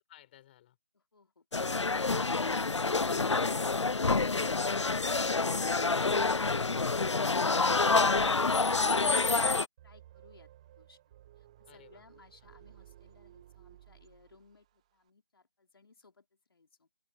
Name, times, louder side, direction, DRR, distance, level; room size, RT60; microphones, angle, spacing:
voice 1, 0.1-0.8 11.7-12.0, left 13 dB, 20° left, 6.0 m, -59 dB
sound 1, 1.5-9.7, left 3 dB, 90° left, 0.4 m, -27 dB
voice 2, 9.8-11.0 11.4-16.9, left 4 dB, 55° left, 4.5 m, -63 dB
sound 2, 9.8-14.8, right 13 dB, 15° right, 0.6 m, -57 dB
open air
figure-of-eight pair, 155°, 15 cm